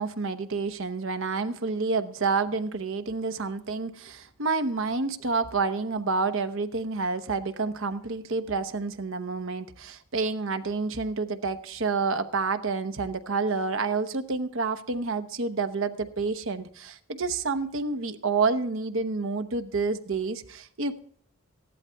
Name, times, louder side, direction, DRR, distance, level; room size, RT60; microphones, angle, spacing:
voice 1, 0.0-21.0, right 4 dB, 60° right, 9 dB, 1.0 m, -29 dB
15.0 x 11.5 x 3.4 m, 0.62 s
head